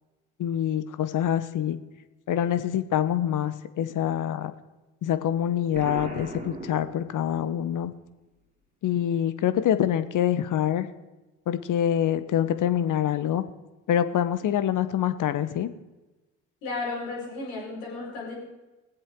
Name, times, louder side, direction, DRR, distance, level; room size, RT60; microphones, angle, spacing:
voice 1, 0.4-1.8 2.3-4.5 5.0-7.9 8.8-10.9 11.5-13.4 13.9-15.7, left 10 dB, 50° left, 12 dB, 1.0 m, -25 dB
Explosion, 5.7-7.6, right 2 dB, 15° right, 2.1 m, -38 dB
voice 2, 16.6-18.4, left 3 dB, 80° left, -5 dB, 4.9 m, -33 dB
21.0 x 7.8 x 3.7 m, 1.1 s
hypercardioid pair, 60°, 41 cm